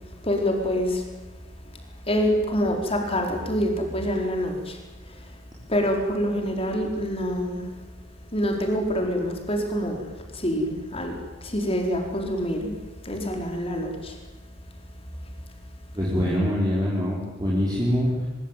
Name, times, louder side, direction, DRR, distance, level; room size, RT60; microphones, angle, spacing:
voice 1, 0.3-1.0 2.1-4.7 5.7-7.6 8.3-10.0 10.3-11.1 11.4-12.8 13.0-14.1, equal, 30° left, 3 dB, 4.6 m, -26 dB
voice 2, 15.9-18.3, equal, 20° right, -6 dB, 4.9 m, -24 dB
23.5 x 22.5 x 9.2 m, 1.2 s
head